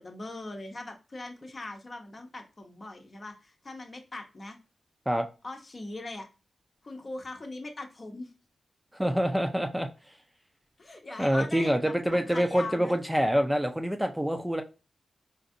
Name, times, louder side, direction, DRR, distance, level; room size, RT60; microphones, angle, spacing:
voice 1, 0.0-4.6 5.4-6.3 6.8-8.3 10.8-13.0, left 2 dB, 45° left, 4 dB, 0.8 m, -40 dB
voice 2, 8.9-9.9 11.2-14.6, equal, 5° right, 5 dB, 0.4 m, -26 dB
3.9 x 2.6 x 2.5 m, 0.31 s
cardioid pair, 50°, 0 cm